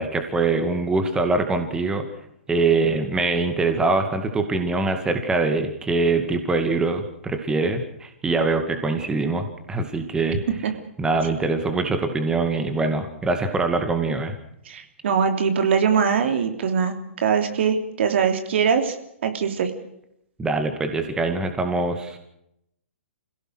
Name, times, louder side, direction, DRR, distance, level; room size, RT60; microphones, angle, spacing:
voice 1, 0.0-2.1 2.5-10.4 11.0-14.3 20.4-22.2, right 3 dB, 10° right, 6 dB, 2.3 m, -23 dB
voice 2, 14.6-18.9 19.2-19.7, right 6 dB, 55° right, 6 dB, 3.1 m, -22 dB
27.5 x 17.0 x 6.4 m, 0.77 s
figure-of-eight pair, 125°, 7 cm